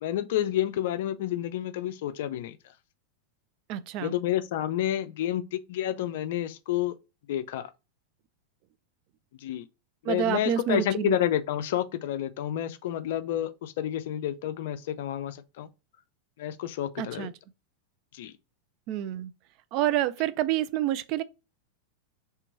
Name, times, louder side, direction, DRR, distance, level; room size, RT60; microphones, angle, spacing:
voice 1, 0.0-2.6 4.0-7.0 7.3-7.7 9.4-9.7 10.0-15.7 16.4-17.3 18.1-18.3, left 12 dB, 55° left, 0.4 m, -29 dB
voice 2, 3.7-4.1 10.0-11.2 17.0-17.3 18.9-19.3 19.7-21.2, right 12 dB, 40° right, 0.3 m, -28 dB
3.3 x 2.9 x 4.3 m
figure-of-eight pair, 90°, 0 cm